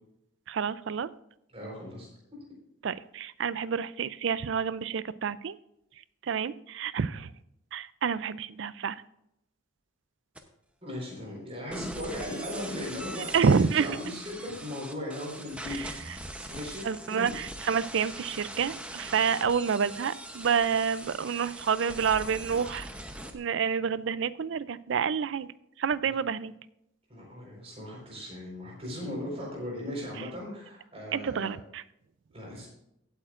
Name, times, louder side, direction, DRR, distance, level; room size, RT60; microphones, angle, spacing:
voice 1, 0.5-1.1 2.8-5.5 6.3-7.3 7.7-9.0 13.3-13.9 15.7-15.9 16.8-22.9 23.3-25.5 25.8-26.5 31.1-31.8, right 6 dB, 60° right, 17 dB, 0.4 m, -28 dB
voice 2, 1.5-2.4 10.8-17.4 26.0-26.1 27.1-31.5 32.3-32.7, left 1 dB, 30° right, -2 dB, 4.4 m, -38 dB
sound 1, 10.4-10.5 11.7-23.3, right 1 dB, 5° right, 0.8 m, -42 dB
16.0 x 8.7 x 2.5 m, 0.81 s
head